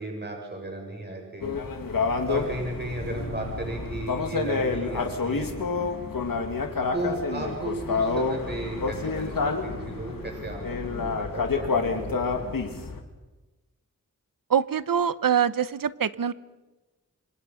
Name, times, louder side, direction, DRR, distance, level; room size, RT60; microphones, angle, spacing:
voice 1, 0.0-1.5 2.2-5.8 6.9-12.5, right 2 dB, 30° right, 1 dB, 7.4 m, -35 dB
sound 1, 1.4-13.0, left 4 dB, 85° left, 2.5 m, -29 dB
voice 2, 14.5-16.3, right 8 dB, 80° right, 16 dB, 0.9 m, -24 dB
26.5 x 25.5 x 5.7 m, 1.1 s
wide cardioid pair, 70°, 33 cm